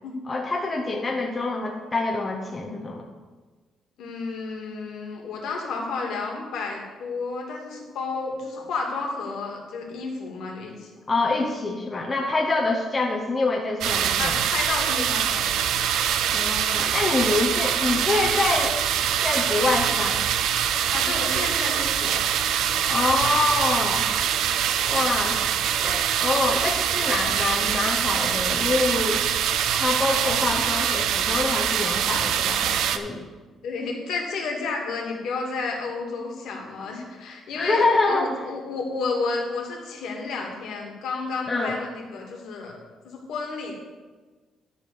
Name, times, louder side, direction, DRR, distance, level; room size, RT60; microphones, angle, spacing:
voice 1, 0.3-3.0 11.1-14.4 16.3-18.8 19.2-20.2 22.9-24.1 24.9-25.4 25.8-29.2 29.8-33.3 37.5-38.3 41.5-41.8, left 3 dB, 20° left, -1 dB, 0.9 m, -25 dB
voice 2, 4.0-10.9 14.2-15.5 20.9-22.3 30.4-30.6 33.6-42.7 43.0-43.7, left 4 dB, 75° left, 0 dB, 2.2 m, -31 dB
sound 1, 13.8-33.0, right 9 dB, 85° right, 0.5 m, -24 dB
11.5 x 4.1 x 6.8 m, 1.3 s
cardioid pair, 140°, 0 cm